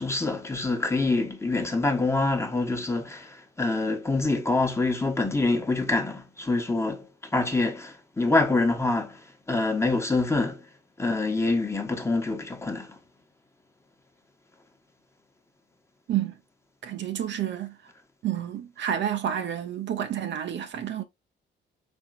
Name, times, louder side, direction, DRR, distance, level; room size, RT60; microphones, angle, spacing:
voice 1, 0.0-10.6 11.0-13.0, left 3 dB, 15° left, 1.1 m, -26 dB
voice 2, 16.8-17.7 18.2-21.0, right 10 dB, 65° right, 0.9 m, -29 dB
4.4 x 4.2 x 2.4 m
cardioid pair, 90°, 20 cm